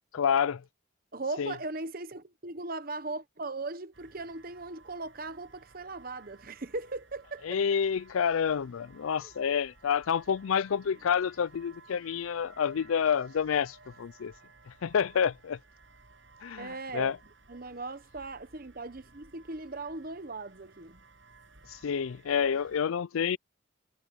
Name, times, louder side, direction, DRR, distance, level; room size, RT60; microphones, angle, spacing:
voice 1, 0.1-0.6 1.4-1.5 7.4-14.3 14.7-15.6 16.4-17.2 21.7-23.4, left 7 dB, 85° left, 0.4 m, -28 dB
voice 2, 1.1-7.6 9.2-9.3 16.6-17.2 17.5-21.0, right 3 dB, 45° right, 1.1 m, -38 dB
sound 1, 3.9-22.8, right 3 dB, 60° right, 6.8 m, -58 dB
head